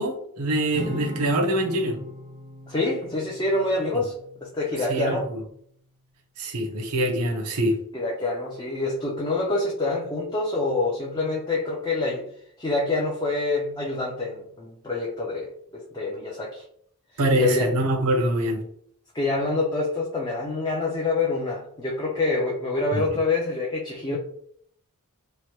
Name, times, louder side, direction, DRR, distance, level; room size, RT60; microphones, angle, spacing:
voice 1, 0.0-2.0 4.9-5.2 6.4-7.7 17.2-18.6 22.9-23.0, right 1 dB, 80° right, 2 dB, 0.7 m, -24 dB
Acoustic guitar / Strum, 0.7-5.2, equal, 35° right, 0.5 m, -40 dB
voice 2, 2.7-4.1 4.4-5.2 7.9-12.3 12.6-16.6 17.4-17.7 19.1-24.2, left 2 dB, 20° left, -3 dB, 0.4 m, -26 dB
3.1 x 2.1 x 2.8 m, 0.65 s
head